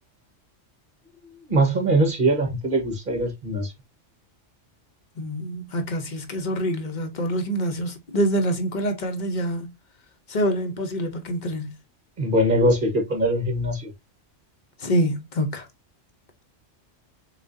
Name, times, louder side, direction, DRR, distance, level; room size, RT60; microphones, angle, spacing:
voice 1, 1.5-3.7 12.2-13.9, right 1 dB, 45° right, 1.4 m, -22 dB
voice 2, 5.2-9.7 10.3-11.7 14.8-15.7, equal, 40° left, 0.9 m, -26 dB
7.0 x 2.5 x 2.6 m
omnidirectional pair, 1.3 m